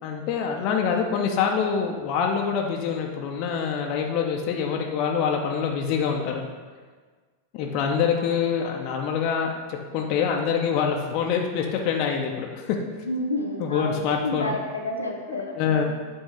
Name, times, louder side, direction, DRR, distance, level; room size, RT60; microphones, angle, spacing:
voice 1, 0.0-6.4 7.5-12.8 13.6-14.6 15.3-15.8, left 7 dB, 40° left, 1 dB, 0.6 m, -25 dB
voice 2, 13.1-15.8, left 1 dB, 85° left, -1 dB, 0.9 m, -30 dB
8.1 x 2.7 x 4.9 m, 1.5 s
figure-of-eight pair, 90°, 0 cm